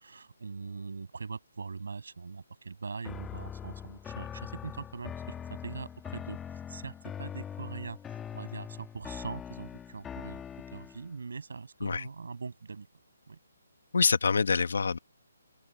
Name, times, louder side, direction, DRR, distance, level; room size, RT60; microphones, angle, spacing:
voice 1, 0.0-6.4 6.7-10.4 10.7-12.9 13.3-13.4, right 4 dB, 65° right, 6.9 m, -42 dB
sound 1, 3.0-11.1, left 8 dB, 5° left, 2.0 m, -42 dB
voice 2, 13.9-15.0, left 5 dB, 60° left, 1.4 m, -26 dB
hypercardioid pair, 180°, 0 cm